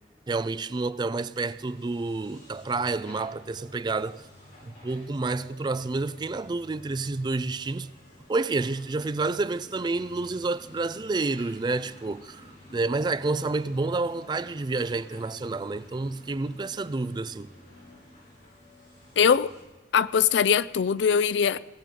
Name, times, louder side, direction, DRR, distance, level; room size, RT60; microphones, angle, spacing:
voice 1, 0.3-4.2 4.6-7.9 8.3-17.5, right 3 dB, 25° right, 0.3 m, -29 dB
sound 1, 1.5-19.6, left 1 dB, 50° left, 6.5 m, -51 dB
voice 2, 19.2-19.5 19.9-21.6, left 7 dB, 85° left, 0.4 m, -21 dB
18.5 x 6.9 x 7.6 m
head